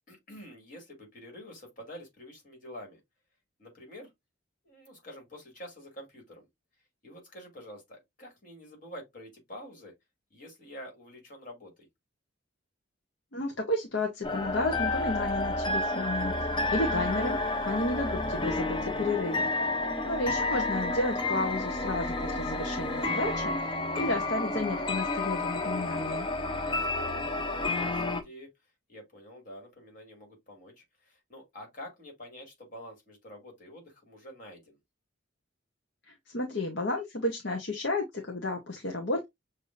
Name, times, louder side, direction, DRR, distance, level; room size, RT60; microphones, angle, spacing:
voice 1, 0.1-3.0 3.6-4.1 4.6-6.5 7.0-9.9 10.3-11.9 19.8-20.2 27.0-28.5 28.9-34.8, equal, 40° left, 2.3 m, -47 dB
voice 2, 13.3-26.3 36.1-39.2, left 2 dB, 60° left, 0.8 m, -32 dB
sound 1, 14.2-28.2, left 2 dB, 25° left, 0.6 m, -30 dB
6.7 x 2.6 x 2.5 m
head